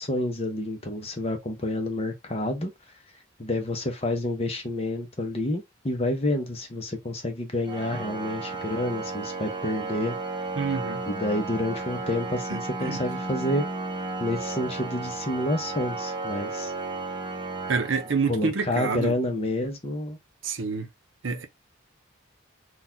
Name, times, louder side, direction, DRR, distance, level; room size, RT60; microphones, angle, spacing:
voice 1, 0.0-2.7 3.4-10.2 11.1-13.6 14.2-16.7 18.3-20.2, left 1 dB, 30° left, 0.9 m, -29 dB
Organ, 7.7-18.6, right 3 dB, 20° right, 0.8 m, -34 dB
voice 2, 10.6-11.0 12.5-13.0 17.7-19.1 20.4-20.9 21.2-21.5, right 4 dB, 65° right, 0.7 m, -27 dB
4.0 x 2.4 x 2.7 m
head